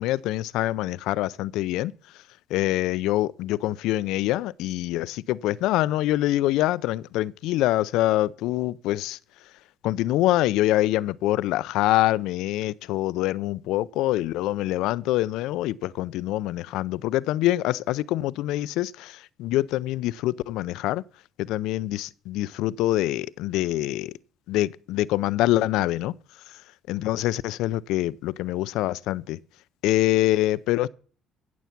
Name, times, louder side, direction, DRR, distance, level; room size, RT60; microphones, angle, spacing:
voice 1, 0.0-1.9 2.5-9.2 9.8-21.0 21.4-24.1 24.5-26.2 26.9-29.4 29.8-30.9, left 15 dB, 85° left, 0.5 m, -25 dB
15.5 x 7.0 x 5.8 m
cardioid pair, 105°, 0 cm